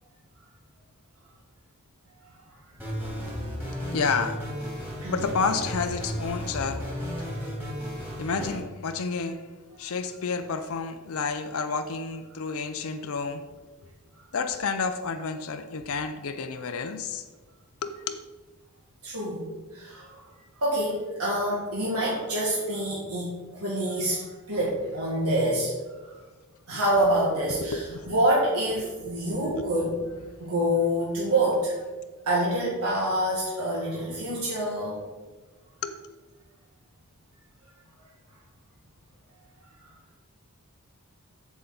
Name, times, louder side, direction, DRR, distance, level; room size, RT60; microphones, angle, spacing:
sound 1, 2.7-8.6, equal, 10° right, 2.4 m, -34 dB
voice 1, 3.4-4.4 5.1-7.1 8.2-9.4 9.8-13.4 14.3-17.2 17.8-18.2 24.5-24.7 26.7-26.8 27.5-28.1 29.1-29.7 35.8-36.2, left 4 dB, 65° left, 8 dB, 0.5 m, -30 dB
voice 2, 19.0-19.5 19.7-20.2 20.5-23.3 23.6-25.7 26.7-30.0 30.4-31.7 32.2-35.0, right 1 dB, 80° right, -6 dB, 1.9 m, -26 dB
7.8 x 7.3 x 4.0 m, 1.3 s
head